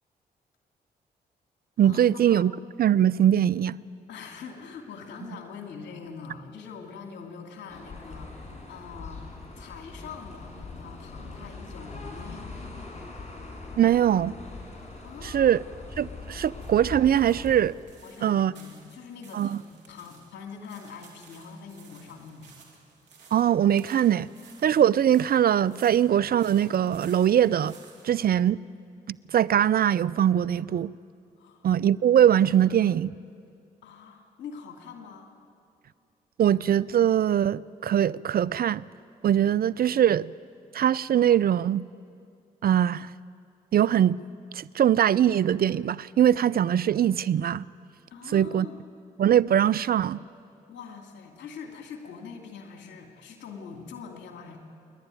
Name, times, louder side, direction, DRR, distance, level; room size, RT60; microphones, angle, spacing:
voice 1, 1.8-2.5 2.8-3.8 13.8-14.3 15.2-15.6 16.0-17.7 18.2-18.5 19.3-19.6 23.3-24.3 24.6-27.8 28.0-28.6 29.3-30.9 31.6-33.1 36.4-38.9 39.2-40.3 40.7-41.9 42.6-43.1 43.7-44.2 44.5-47.6 48.3-48.7 49.2-50.2, right 10 dB, 55° right, 0.5 m, -22 dB
voice 2, 4.1-12.6 15.0-15.6 18.0-22.5 31.4-31.7 33.8-35.3 48.1-48.8 50.7-54.6, left 5 dB, 75° left, 2.7 m, -43 dB
sound 1, 7.7-17.5, left 3 dB, 40° left, 5.6 m, -41 dB
sound 2, 14.4-28.1, right 5 dB, 80° right, 2.9 m, -55 dB
28.0 x 11.5 x 9.3 m
hypercardioid pair, 40°, 19 cm